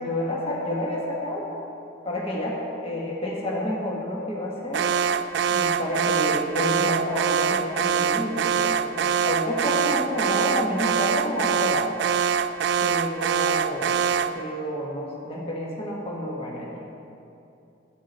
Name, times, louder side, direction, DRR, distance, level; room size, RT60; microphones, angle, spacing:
voice 1, 0.0-1.5 2.0-4.8 5.5-11.9 12.8-14.0 14.3-17.0, left 1 dB, 30° left, -4 dB, 1.5 m, -29 dB
Alarm, 4.7-14.4, right 7 dB, 65° right, 0.3 m, -24 dB
12.0 x 9.6 x 4.3 m, 2.6 s
head